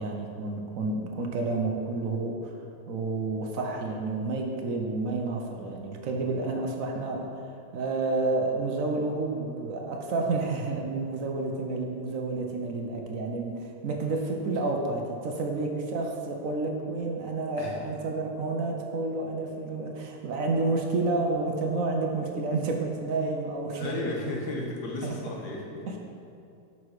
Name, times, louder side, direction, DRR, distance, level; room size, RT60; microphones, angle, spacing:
voice 1, 0.0-2.5 2.9-7.4 7.7-24.0 25.0-25.2 25.9-26.0, right 3 dB, 65° right, 2 dB, 1.0 m, -30 dB
voice 2, 23.7-25.9, left 2 dB, 85° left, -1 dB, 1.7 m, -34 dB
6.3 x 5.6 x 4.8 m, 2.7 s
omnidirectional pair, 1.7 m